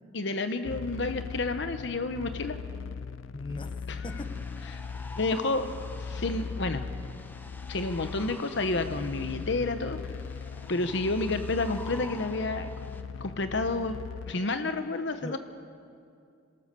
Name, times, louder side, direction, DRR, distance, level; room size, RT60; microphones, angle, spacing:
voice 1, 0.1-2.6 3.9-4.0 4.7-4.8 5.2-5.6 6.0-6.9 7.7-10.0 10.7-12.7 13.2-14.0 14.3-15.4, left 2 dB, 65° left, 8 dB, 1.0 m, -30 dB
sound 1, 0.6-14.3, left 5 dB, 85° left, 0.4 m, -39 dB
voice 2, 3.3-3.7 4.0-4.3 15.2-15.4, left 2 dB, 25° left, 7 dB, 1.2 m, -37 dB
sound 2, 4.1-13.0, left 2 dB, 10° left, 1.0 m, -49 dB
27.0 x 17.5 x 6.9 m, 2.4 s
head